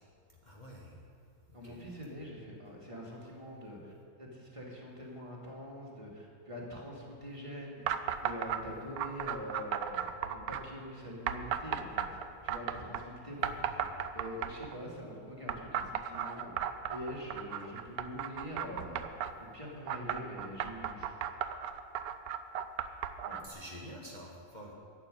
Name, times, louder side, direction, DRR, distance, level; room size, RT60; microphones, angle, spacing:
voice 1, 0.4-1.0 1.5-1.8 13.4-14.1 23.4-24.7, equal, 30° left, -4 dB, 1.5 m, -49 dB
voice 2, 1.5-3.9 4.2-7.9 8.2-13.6 14.1-19.1 19.4-21.1 23.2-23.4, equal, 20° right, -3 dB, 2.3 m, -44 dB
sound 1, 7.9-8.6 9.0-10.6 11.3-13.0 13.4-14.7 15.5-19.3 19.9-23.5, right 9 dB, 75° right, 1.1 m, -35 dB
11.5 x 7.5 x 9.9 m, 2.3 s
omnidirectional pair, 1.6 m